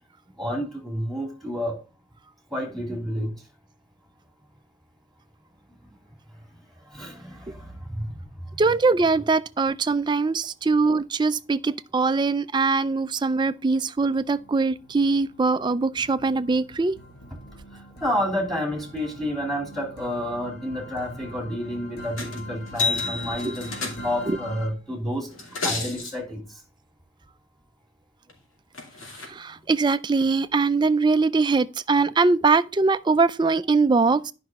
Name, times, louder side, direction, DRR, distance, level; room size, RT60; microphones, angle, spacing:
voice 1, 0.4-1.8 2.5-3.3 6.9-8.2 17.7-26.4, equal, ahead, 2.8 m, -30 dB
voice 2, 8.6-17.0 23.4-23.6 24.3-24.4 29.3-34.3, right 4 dB, 20° right, 0.4 m, -22 dB
sound 1, 13.0-13.5 14.0-24.7, equal, 55° left, 2.3 m, -43 dB
sound 2, 22.2-22.4 22.7-24.3 25.3-26.1 28.3-28.4 28.7-29.3 30.2-30.3, left 4 dB, 85° left, 2.6 m, -30 dB
10.5 x 5.6 x 3.6 m
head